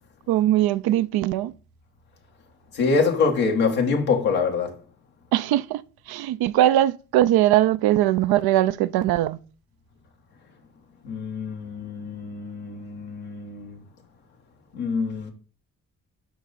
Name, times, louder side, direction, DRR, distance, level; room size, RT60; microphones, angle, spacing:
voice 1, 0.3-1.5 5.3-9.4, right 13 dB, 80° right, 0.5 m, -21 dB
voice 2, 2.7-4.8 11.0-13.8 14.7-15.3, left 4 dB, 90° left, 1.5 m, -25 dB
9.5 x 5.4 x 4.1 m
hypercardioid pair, 40°, 37 cm